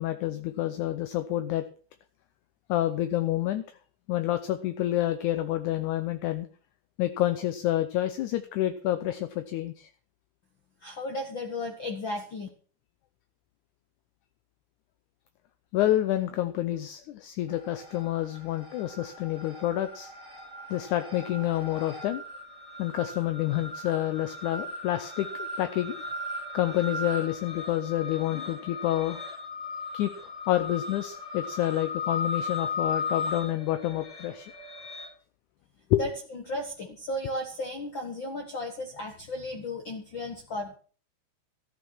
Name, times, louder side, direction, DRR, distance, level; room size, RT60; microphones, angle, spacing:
voice 1, 0.0-1.6 2.7-3.6 4.1-6.5 7.0-9.9 15.7-20.1 20.7-22.2 22.8-26.0 26.5-29.2 29.9-30.1 30.5-34.5 35.9-36.0, left 14 dB, 75° left, 10 dB, 2.0 m, -28 dB
voice 2, 10.8-12.5 36.0-40.8, left 1 dB, 50° left, 3 dB, 1.4 m, -35 dB
sound 1, 17.5-18.2 18.5-35.1, left 3 dB, 25° left, 2.8 m, -37 dB
14.0 x 9.2 x 6.2 m, 0.43 s
omnidirectional pair, 4.1 m